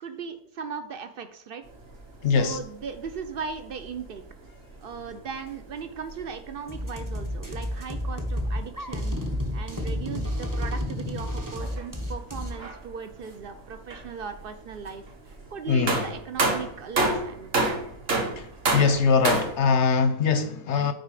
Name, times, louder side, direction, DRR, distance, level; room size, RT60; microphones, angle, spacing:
voice 1, 0.0-1.6 2.3-4.2 4.8-9.2 9.5-17.5, right 6 dB, 70° right, 0.5 m, -37 dB
sound 1, 1.6-19.6, right 2 dB, 40° right, 1.3 m, -33 dB
voice 2, 2.2-2.6 15.7-16.1 18.4-18.5 18.7-20.9, left 5 dB, 60° left, 0.8 m, -22 dB
sound 2, 6.7-12.5, left 1 dB, 15° right, 0.8 m, -30 dB
9.1 x 4.2 x 4.8 m
omnidirectional pair, 1.7 m